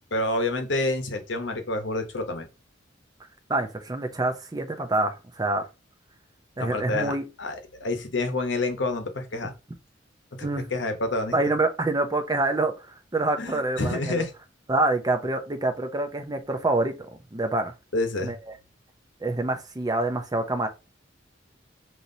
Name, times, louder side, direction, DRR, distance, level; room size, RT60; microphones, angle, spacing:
voice 1, 0.1-2.5 6.6-9.5 10.4-11.3 13.4-14.3 17.9-18.3, left 2 dB, 70° left, 0.9 m, -28 dB
voice 2, 3.5-5.6 6.6-7.2 10.4-10.7 11.3-14.2 14.7-16.9 17.3-17.7 18.2-18.4 19.2-20.7, right 2 dB, 20° right, 0.6 m, -26 dB
5.4 x 3.0 x 2.7 m
head